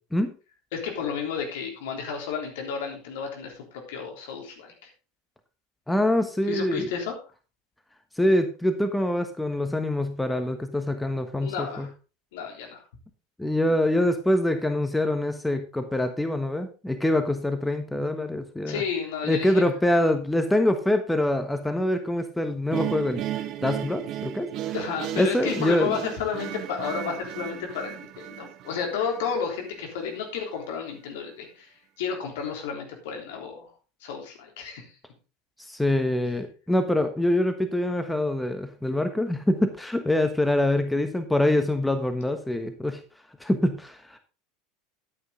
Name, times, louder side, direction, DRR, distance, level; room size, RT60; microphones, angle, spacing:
voice 1, 0.7-4.7 6.5-7.1 11.4-11.9 12.3-12.8 18.7-19.6 24.7-33.7 34.0-34.8, left 6 dB, 65° left, 2 dB, 3.5 m, -32 dB
voice 2, 5.9-6.9 8.2-11.9 13.4-18.8 19.3-23.2 23.6-24.7 25.2-26.0 35.6-43.0 43.4-44.2, left 1 dB, 5° left, 8 dB, 1.2 m, -25 dB
sound 1, 22.7-29.8, right 12 dB, 45° right, 0.8 m, -35 dB
11.0 x 9.6 x 3.8 m, 0.33 s
figure-of-eight pair, 75°, 0 cm